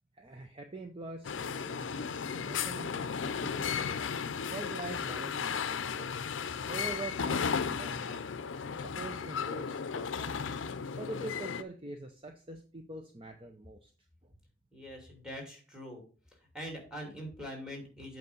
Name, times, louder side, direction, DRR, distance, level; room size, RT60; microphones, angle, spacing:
voice 1, 0.1-3.9 4.4-6.2 6.7-8.2 8.5-10.6 11.0-13.9 14.2-14.3, right 2 dB, 30° right, 5 dB, 0.6 m, -44 dB
sound 1, 1.2-11.6, left 6 dB, 80° left, 0.5 m, -35 dB
voice 2, 14.7-16.0 16.3-18.2, equal, 5° right, 1 dB, 2.7 m, -43 dB
8.3 x 4.6 x 5.4 m, 0.38 s
head